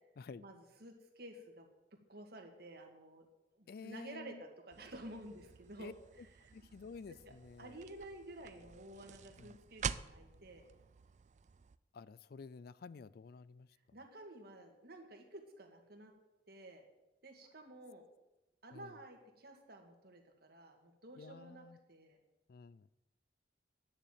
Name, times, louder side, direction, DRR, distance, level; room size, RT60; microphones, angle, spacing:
voice 1, 0.4-1.7 2.1-3.3 3.6-5.9 6.4-6.5 7.1-7.3 7.6-10.7 13.9-16.1 16.5-16.8 17.2-18.0 18.6-22.2, right 1 dB, 55° right, 4 dB, 1.9 m, -52 dB
voice 2, 3.7-4.4 5.8-5.9 6.5-7.8 9.4-9.6 11.9-13.7 18.7-18.9 21.2-21.8 22.5-22.9, left 4 dB, 55° left, 19 dB, 0.3 m, -51 dB
sound 1, 4.7-11.8, right 7 dB, 40° right, 0.3 m, -48 dB
10.0 x 6.9 x 9.1 m, 0.99 s
head